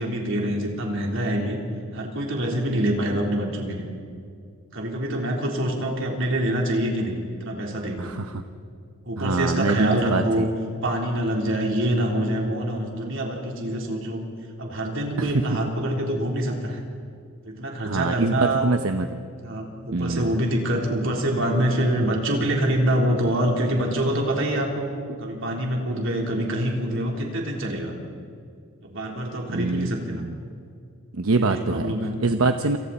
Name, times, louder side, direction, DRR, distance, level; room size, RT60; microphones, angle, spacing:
voice 1, 0.0-1.6 1.9-3.9 4.7-8.0 9.1-10.5 10.8-14.2 14.6-16.8 17.4-18.7 19.4-24.9 25.2-27.9 28.8-30.3 31.3-32.2, right 1 dB, 65° right, 0 dB, 3.8 m, -25 dB
voice 2, 9.2-10.4 15.2-15.3 17.9-19.2 19.9-20.3 25.1-25.2 29.5-30.4 31.1-31.9 32.2-32.8, right 3 dB, 85° right, 7 dB, 0.9 m, -24 dB
28.0 x 28.0 x 4.3 m, 2.4 s
head